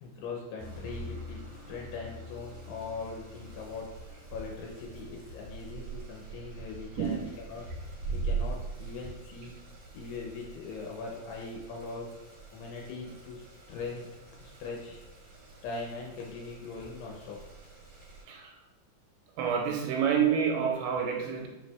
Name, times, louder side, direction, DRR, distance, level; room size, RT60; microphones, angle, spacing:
voice 1, 0.0-7.6 8.1-9.6 9.9-12.1 12.5-13.4 13.7-14.1 14.4-15.0 15.6-17.4, left 4 dB, 80° left, -1 dB, 2.5 m, -41 dB
sound 1, 0.6-18.2, right 3 dB, 50° right, 2.0 m, -42 dB
voice 2, 7.0-7.3 18.2-18.6 19.4-21.5, right 7 dB, 85° right, 1 dB, 2.9 m, -28 dB
7.2 x 6.1 x 2.3 m, 1.0 s
omnidirectional pair, 5.4 m